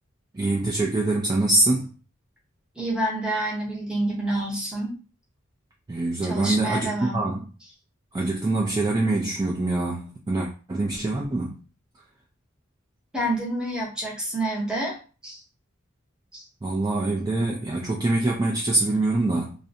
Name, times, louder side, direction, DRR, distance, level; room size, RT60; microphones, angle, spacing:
voice 1, 0.3-1.9 5.9-7.4 8.1-11.6 16.6-19.6, right 2 dB, 20° right, 0.3 m, -24 dB
voice 2, 2.8-5.0 6.2-7.2 13.1-15.0 15.2-15.4 16.3-16.4, right 1 dB, 5° right, 0.8 m, -28 dB
2.4 x 2.1 x 2.7 m
head